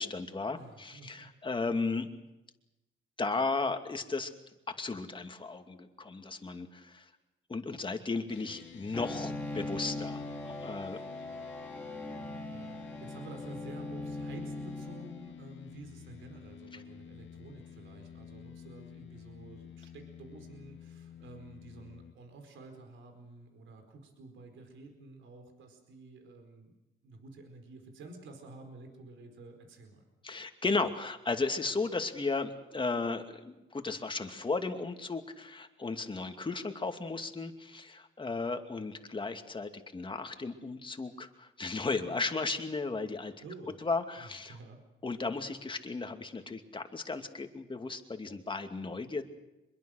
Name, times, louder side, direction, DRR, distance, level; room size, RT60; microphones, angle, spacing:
voice 1, 0.0-2.1 3.2-4.3 4.8-7.0 7.5-11.0 30.2-43.3 43.8-44.5 45.0-49.2, left 3 dB, 25° left, 6 dB, 2.5 m, -35 dB
voice 2, 0.5-1.3 10.9-11.1 12.5-26.7 27.0-30.1 43.4-43.8 44.2-44.8, right 3 dB, 75° right, 5 dB, 4.8 m, -50 dB
sound 1, 8.3-22.1, left 8 dB, 75° left, 1.9 m, -50 dB
Bowed string instrument, 8.9-15.6, left 2 dB, 5° left, 2.7 m, -40 dB
24.5 x 22.0 x 6.5 m, 0.98 s
cardioid pair, 90°, 20 cm